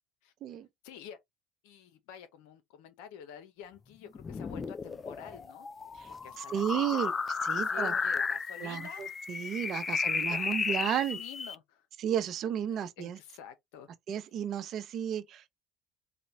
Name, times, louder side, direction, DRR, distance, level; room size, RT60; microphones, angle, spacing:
voice 1, 0.8-1.2 1.6-5.7 6.1-7.1 7.5-9.1 10.3-11.9 12.7-13.9, left 9 dB, 80° left, 0.9 m, -48 dB
sound 1, 4.1-11.6, left 5 dB, 30° left, 0.3 m, -34 dB
voice 2, 6.4-7.1 7.4-7.9 8.6-11.2 12.0-13.2 14.1-15.4, right 9 dB, 55° right, 0.7 m, -33 dB
4.2 x 2.4 x 3.1 m
supercardioid pair, 85°, 0 cm